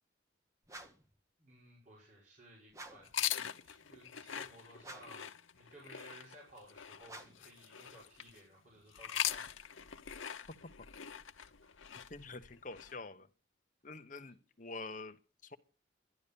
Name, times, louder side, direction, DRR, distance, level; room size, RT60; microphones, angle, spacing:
sound 1, 0.6-1.1 2.7-3.2 4.8-5.3 7.0-7.5, right 2 dB, 15° right, 1.3 m, -51 dB
voice 1, 1.4-9.5, right 1 dB, 40° right, 5.7 m, -58 dB
sound 2, 3.0-8.4 8.9-12.9, left 10 dB, 90° left, 0.9 m, -42 dB
voice 2, 12.1-13.3 13.8-15.6, left 3 dB, 40° left, 1.0 m, -47 dB
12.0 x 11.0 x 6.9 m
head